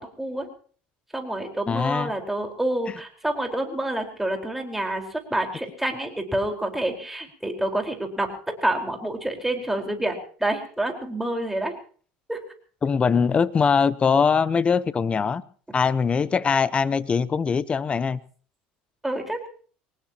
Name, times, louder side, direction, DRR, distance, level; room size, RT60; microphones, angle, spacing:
voice 1, 1.1-8.3 8.6-11.7 12.3-12.4 19.0-19.5, right 1 dB, 5° right, 3 dB, 4.6 m, -28 dB
voice 2, 1.7-2.1 12.8-15.4 15.7-18.2, left 6 dB, 25° left, 17 dB, 0.9 m, -22 dB
24.0 x 19.5 x 3.0 m, 0.44 s
supercardioid pair, 100°, 4 cm